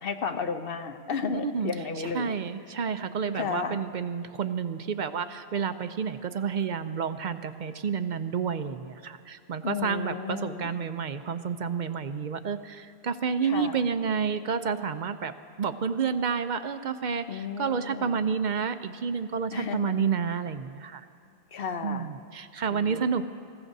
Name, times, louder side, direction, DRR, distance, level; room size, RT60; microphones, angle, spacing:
voice 1, 0.0-2.4 3.3-3.8 9.6-10.7 13.4-13.8 17.3-18.1 19.5-20.0 21.5-22.1 22.7-23.0, left 5 dB, 65° left, 6 dB, 1.0 m, -33 dB
voice 2, 1.3-15.3 15.6-21.1 21.8-23.2, right 6 dB, 55° right, 10 dB, 0.6 m, -30 dB
26.5 x 15.0 x 2.7 m, 2.4 s
omnidirectional pair, 1.1 m